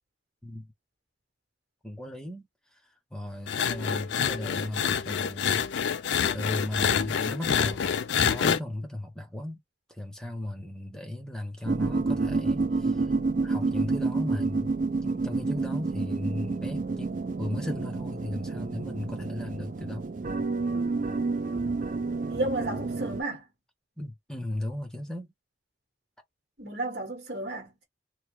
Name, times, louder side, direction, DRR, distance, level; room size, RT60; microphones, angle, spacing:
voice 1, 1.8-2.5 2.7-2.8 3.1-5.7 6.3-9.6 9.9-13.1 13.4-14.7 15.0-20.0 24.0-25.3, left 1 dB, 5° left, 0.7 m, -36 dB
sound 1, 3.5-8.6, left 7 dB, 75° left, 0.3 m, -27 dB
sound 2, 11.7-23.2, right 3 dB, 45° right, 0.4 m, -29 dB
voice 2, 22.3-23.4 26.6-27.8, right 2 dB, 65° right, 1.1 m, -32 dB
3.0 x 2.2 x 3.1 m
head